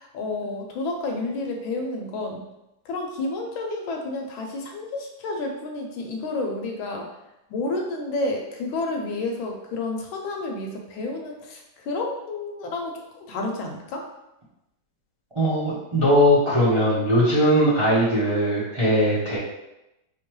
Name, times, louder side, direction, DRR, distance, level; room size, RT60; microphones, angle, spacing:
voice 1, 0.0-2.4 2.9-7.1 7.5-11.6 11.9-14.0, left 2 dB, 75° left, 2 dB, 1.3 m, -30 dB
voice 2, 15.3-19.4, equal, 30° right, -9 dB, 0.6 m, -20 dB
4.2 x 2.9 x 3.0 m, 0.90 s
omnidirectional pair, 2.3 m